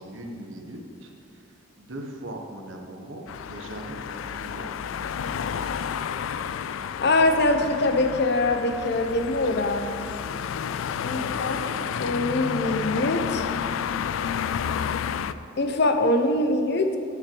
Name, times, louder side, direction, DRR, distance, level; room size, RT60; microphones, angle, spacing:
voice 1, 0.0-1.4 1.8-4.7 11.1-11.8, right 1 dB, 70° right, 2 dB, 1.2 m, -40 dB
sound 1, 3.3-15.3, left 7 dB, 80° left, 0.3 m, -31 dB
voice 2, 7.0-9.9 11.0-11.6 12.0-13.5 15.6-17.0, left 2 dB, 55° left, 6 dB, 0.8 m, -23 dB
8.6 x 5.9 x 6.8 m, 2.6 s
head